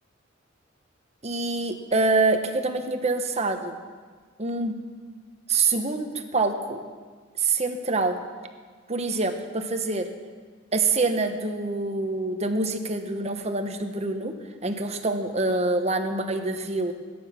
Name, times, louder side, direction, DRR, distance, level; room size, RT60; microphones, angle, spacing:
voice 1, 1.2-3.8 4.4-4.7 5.5-6.8 7.4-8.2 8.9-10.1 10.7-14.3 14.6-16.9, right 3 dB, 35° right, 6 dB, 1.1 m, -25 dB
20.5 x 9.7 x 5.9 m, 1.5 s
head